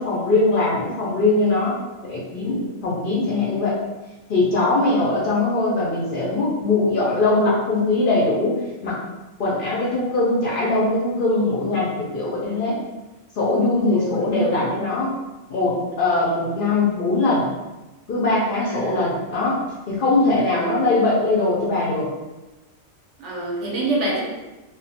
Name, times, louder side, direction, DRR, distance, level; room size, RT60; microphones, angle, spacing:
voice 1, 0.0-3.8 4.3-9.0 9.4-12.8 13.3-15.1 15.5-17.5 18.1-19.6 19.9-22.1, left 2 dB, 60° left, -5 dB, 0.6 m, -21 dB
voice 2, 13.9-14.6 18.6-19.2 20.3-20.8 23.2-24.2, right 2 dB, 70° right, -3 dB, 0.8 m, -28 dB
2.3 x 2.1 x 2.7 m, 1.1 s
omnidirectional pair, 1.4 m